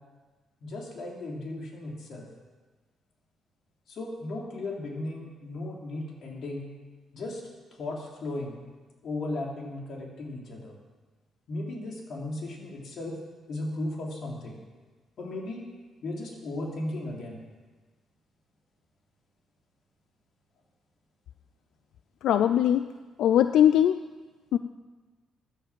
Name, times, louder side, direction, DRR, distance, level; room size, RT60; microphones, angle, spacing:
voice 1, 0.6-2.3 3.9-6.6 7.1-7.4 7.8-8.6 9.0-10.8 11.5-13.2 13.5-14.6 15.2-15.7 16.0-17.4, left 2 dB, 55° left, -1 dB, 3.5 m, -36 dB
voice 2, 22.2-22.8 23.2-24.0 24.5-24.6, left 10 dB, 85° left, 11 dB, 0.4 m, -20 dB
14.0 x 10.0 x 7.6 m, 1.3 s
cardioid pair, 140°, 0 cm